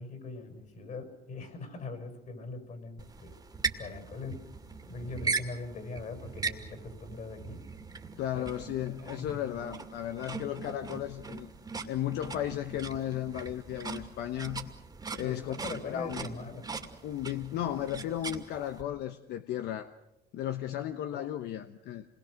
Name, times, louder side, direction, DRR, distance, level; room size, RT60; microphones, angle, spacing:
voice 1, 0.0-3.3 3.8-4.4 4.9-7.6 8.3-8.7 9.0-9.5 15.2-16.7 21.1-21.3, left 3 dB, 50° left, 7 dB, 6.1 m, -41 dB
sound 1, 3.0-18.8, right 4 dB, 25° right, 2.4 m, -40 dB
voice 2, 8.2-11.5 11.9-14.7 15.1-15.5 15.8-16.2 17.0-19.9 20.3-22.1, left 11 dB, 80° left, 8 dB, 1.0 m, -35 dB
27.0 x 21.5 x 6.5 m, 0.89 s
cardioid pair, 110°, 17 cm